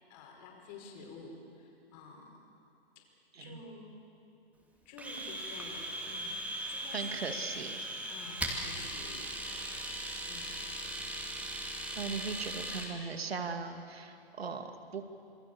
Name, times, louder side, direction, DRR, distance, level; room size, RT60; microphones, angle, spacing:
voice 1, 0.1-2.3 3.4-4.0 4.9-7.1 8.1-9.3 10.2-10.8, left 3 dB, 45° left, 1 dB, 5.7 m, -50 dB
Domestic sounds home sounds, 5.0-12.9, right 1 dB, 5° right, 2.5 m, -39 dB
voice 2, 6.6-7.9 12.0-15.0, right 5 dB, 90° right, 6 dB, 2.4 m, -39 dB
27.5 x 23.0 x 7.0 m, 2.6 s
hypercardioid pair, 135°, 30 cm